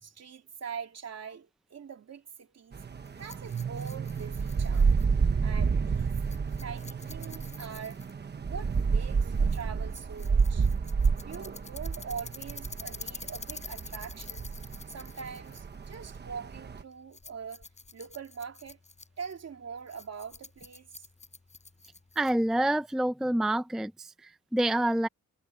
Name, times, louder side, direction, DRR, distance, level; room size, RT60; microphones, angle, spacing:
voice 1, 0.0-2.8 3.2-4.9 5.4-6.2 6.6-8.0 8.4-10.7 11.2-14.5 14.9-17.7 17.9-18.8 19.2-21.0, right 6 dB, 55° right, 3.4 m, -43 dB
sound 1, 2.7-16.8, right 5 dB, 35° right, 1.1 m, -30 dB
Rattle, 3.1-22.6, left 3 dB, 20° left, 6.4 m, -48 dB
voice 2, 22.2-25.1, right 1 dB, ahead, 0.5 m, -27 dB
wide cardioid pair, 175°, 31 cm